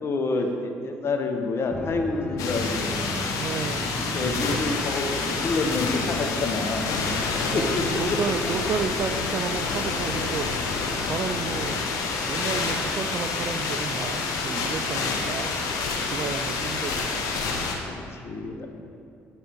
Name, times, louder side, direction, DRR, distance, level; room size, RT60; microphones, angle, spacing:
voice 1, 0.0-2.9 3.6-6.9 7.3-8.2 9.5-9.6 14.9-15.3 17.4-18.7, left 3 dB, 45° left, 4 dB, 0.8 m, -29 dB
Organ, 1.7-7.1, equal, 15° left, 0.8 m, -35 dB
sound 1, 2.4-17.7, left 4 dB, 75° left, 0.8 m, -28 dB
voice 2, 3.4-3.9 7.5-10.5 11.1-11.7 12.2-15.7 16.1-17.7, right 6 dB, 45° right, 10 dB, 0.4 m, -32 dB
9.8 x 4.5 x 3.4 m, 2.4 s
supercardioid pair, 65°, 6 cm